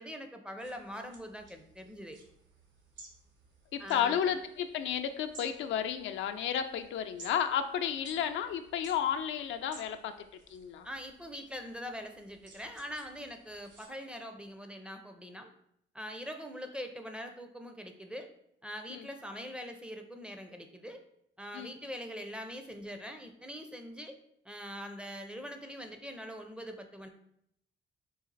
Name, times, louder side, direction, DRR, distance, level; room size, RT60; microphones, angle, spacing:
voice 1, 0.0-2.2 3.8-4.2 10.8-15.5 15.9-18.3 18.6-21.0 21.4-24.2 24.4-27.1, equal, 5° right, 5 dB, 0.5 m, -43 dB
sound 1, 0.6-13.9, right 3 dB, 65° right, 0.9 m, -57 dB
voice 2, 3.7-10.1 10.5-10.9 18.9-19.1 21.5-21.7, left 9 dB, 75° left, 8 dB, 0.4 m, -32 dB
4.0 x 2.4 x 3.9 m, 0.73 s
cardioid pair, 90°, 20 cm